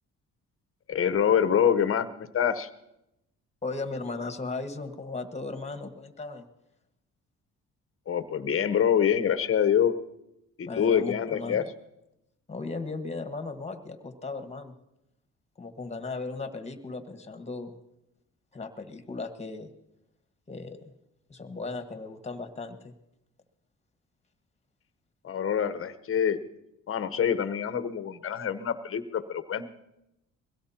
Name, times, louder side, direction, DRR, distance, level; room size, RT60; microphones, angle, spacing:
voice 1, 0.9-2.7 8.1-9.9 10.6-11.6 25.2-26.4 26.9-29.7, left 8 dB, 45° left, 12 dB, 1.0 m, -25 dB
voice 2, 3.6-6.5 10.6-11.6 12.5-14.7 15.6-17.8 18.5-19.7 20.5-20.8 21.3-22.9, left 3 dB, 20° left, 7 dB, 1.5 m, -36 dB
22.5 x 16.5 x 2.9 m, 0.86 s
cardioid pair, 90°, 30 cm